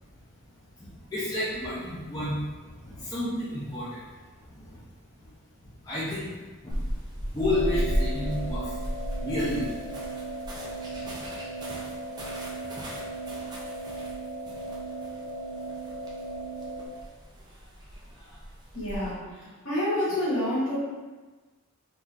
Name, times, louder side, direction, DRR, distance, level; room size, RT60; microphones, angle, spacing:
voice 1, 0.5-4.8 5.8-6.4 6.8-6.9 7.2-8.8 9.1-9.8 10.7-11.5, left 1 dB, 15° left, -11 dB, 0.7 m, -32 dB
sound 1, 6.7-19.1, equal, 20° right, 0.5 m, -36 dB
sound 2, 7.4-16.9, right 2 dB, 35° right, 0.9 m, -37 dB
voice 2, 18.7-20.8, left 1 dB, 60° left, -8 dB, 1.3 m, -29 dB
3.7 x 2.9 x 2.5 m, 1.3 s
head